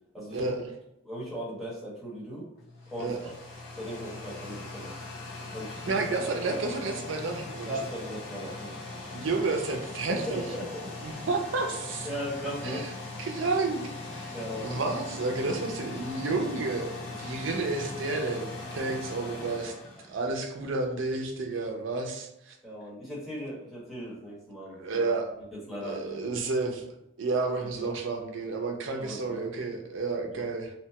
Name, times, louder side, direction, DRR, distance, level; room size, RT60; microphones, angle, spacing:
voice 1, 0.1-0.6 1.0-2.4 2.9-3.3 3.8-4.9 5.5-5.9 7.7-8.7 10.1-10.9 12.0-12.8 14.3-14.7 19.3-19.5 22.6-25.1 25.5-26.4 27.6-27.9 29.0-29.4 30.3-30.4, equal, ahead, -8 dB, 1.0 m, -38 dB
sound 1, 2.6-20.7, left 3 dB, 65° left, 1.2 m, -40 dB
voice 2, 5.9-7.7 9.1-10.4 11.0-12.1 12.6-12.9 13.2-19.7 20.1-22.6 24.7-25.3 25.8-26.9 27.2-30.7, right 3 dB, 70° right, 3 dB, 0.5 m, -31 dB
2.9 x 2.2 x 2.8 m, 0.86 s
head